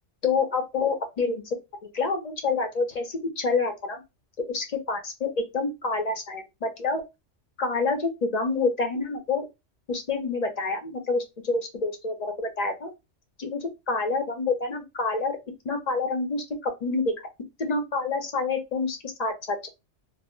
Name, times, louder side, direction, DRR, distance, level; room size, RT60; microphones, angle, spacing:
voice 1, 0.2-1.4 1.9-4.0 4.5-7.0 7.6-9.5 9.9-12.9 13.4-15.4 15.6-17.1 17.6-19.7, left 3 dB, 45° left, 0.6 m, -27 dB
2.1 x 2.1 x 3.6 m
omnidirectional pair, 1.3 m